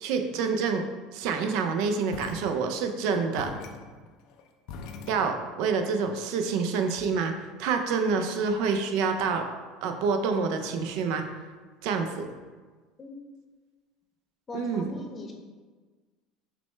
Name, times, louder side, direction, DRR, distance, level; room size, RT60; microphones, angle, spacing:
voice 1, 0.0-0.9 1.1-3.5 5.1-7.3 7.6-9.5 9.8-11.2 11.8-12.3 14.5-14.9, right 5 dB, 70° right, 6 dB, 0.4 m, -27 dB
sound 1, 2.1-3.0 3.4-5.7, left 5 dB, 65° left, 0.4 m, -43 dB
voice 2, 14.5-15.3, left 2 dB, 30° left, 2 dB, 0.7 m, -39 dB
5.9 x 2.2 x 3.2 m, 1.4 s
supercardioid pair, 100°, 0 cm